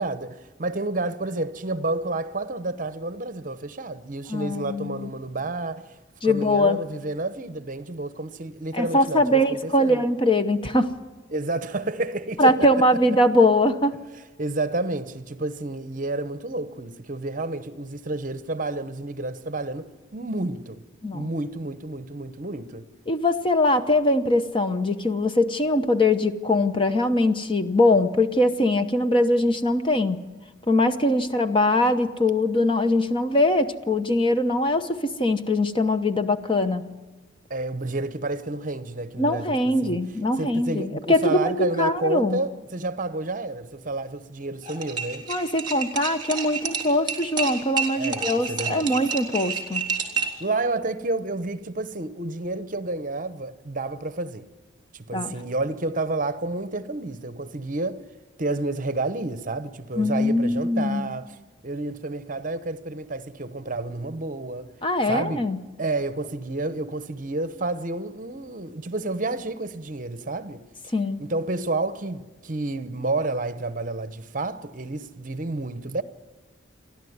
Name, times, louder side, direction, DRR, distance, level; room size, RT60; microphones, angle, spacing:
voice 1, 0.0-6.0 6.2-10.0 11.3-12.7 14.4-20.8 21.1-22.8 37.5-40.1 40.4-45.3 48.0-48.9 50.4-54.5 54.9-58.0 58.4-61.4 61.6-64.7 65.1-65.5 65.8-70.6 71.2-76.0, right 2 dB, 40° right, 0.9 m, -30 dB
voice 2, 4.3-5.1 6.2-6.8 8.7-10.9 12.4-14.0 21.0-21.3 23.1-30.2 30.7-36.8 39.2-42.4 45.3-49.8 55.1-55.3 60.0-61.1 64.8-65.6 70.9-71.2, left 1 dB, 25° left, 0.9 m, -22 dB
sound 1, 44.6-50.4, right 5 dB, 25° right, 3.5 m, -29 dB
29.0 x 11.5 x 9.5 m
head